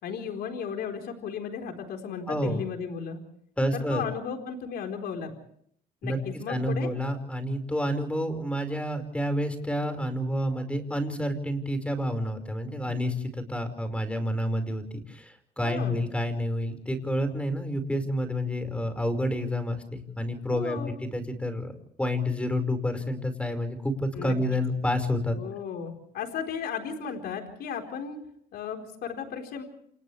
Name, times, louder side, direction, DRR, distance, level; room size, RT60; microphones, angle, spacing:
voice 1, 0.0-3.2 3.7-5.3 6.0-6.9 15.6-16.0 20.5-20.9 24.1-24.3 25.3-28.2 28.5-29.6, left 7 dB, 70° left, 4 dB, 4.3 m, -35 dB
voice 2, 2.3-2.6 3.6-4.0 6.0-6.2 6.5-21.7 22.0-25.4, equal, 5° left, 8 dB, 5.1 m, -29 dB
29.5 x 28.0 x 3.4 m, 0.66 s
cardioid pair, 110°, 17 cm